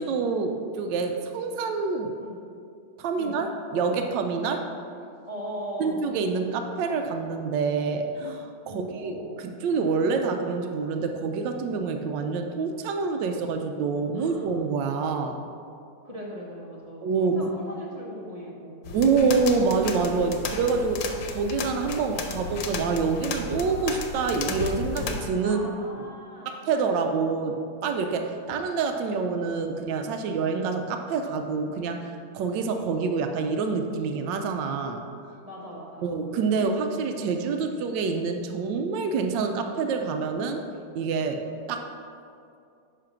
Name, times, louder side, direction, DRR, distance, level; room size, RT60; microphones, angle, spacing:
voice 1, 0.0-2.1 3.0-4.7 5.8-9.2 9.4-15.4 17.0-17.5 18.9-25.6 26.5-35.0 36.0-40.6 40.9-41.9, right 4 dB, 85° right, 5 dB, 1.3 m, -27 dB
voice 2, 5.3-6.0 8.6-9.5 14.1-14.5 16.0-19.2 25.4-26.5 35.4-36.2, equal, 25° right, -3 dB, 0.9 m, -39 dB
sound 1, 18.8-25.3, left 4 dB, 80° left, 1.4 m, -34 dB
9.9 x 3.3 x 5.9 m, 2.4 s
omnidirectional pair, 2.0 m